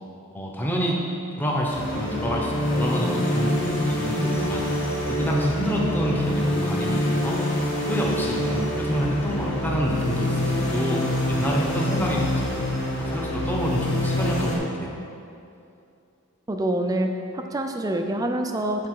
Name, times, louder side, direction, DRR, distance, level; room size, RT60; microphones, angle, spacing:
voice 1, 0.3-1.0 1.4-4.7 5.1-7.6 7.9-12.6 13.0-15.0, equal, 10° left, -2 dB, 0.8 m, -28 dB
sound 1, 1.7-14.6, left 1 dB, 60° left, 1.5 m, -25 dB
voice 2, 16.5-17.1 17.3-18.9, right 1 dB, 15° right, 5 dB, 0.4 m, -26 dB
8.3 x 4.0 x 4.7 m, 2.7 s
head